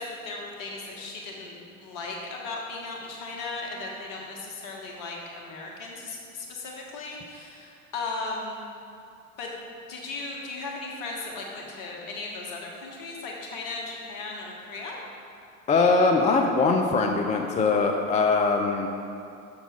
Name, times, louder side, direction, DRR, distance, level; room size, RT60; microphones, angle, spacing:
voice 1, 0.0-8.6 9.4-9.5 9.9-15.0, left 3 dB, 50° left, -1 dB, 1.6 m, -36 dB
voice 2, 15.7-18.9, left 4 dB, 20° left, 2 dB, 0.4 m, -22 dB
6.9 x 6.4 x 3.7 m, 2.7 s
hypercardioid pair, 75°, 42 cm